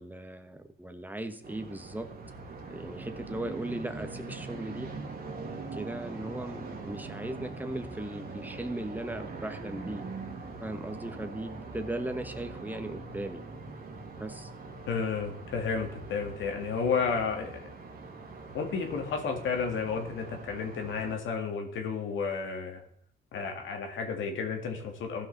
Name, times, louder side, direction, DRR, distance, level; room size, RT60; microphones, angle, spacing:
voice 1, 0.0-2.1 2.7-4.9 5.7-10.1 10.6-13.4 14.2-14.5, right 1 dB, 10° right, 8 dB, 1.2 m, -37 dB
sound 1, 1.4-21.1, right 3 dB, 50° right, 1.9 m, -42 dB
voice 2, 14.9-17.7 18.5-22.8 23.3-25.3, left 5 dB, 75° left, 4 dB, 2.0 m, -32 dB
15.0 x 5.7 x 4.0 m, 0.65 s
cardioid pair, 90°, 20 cm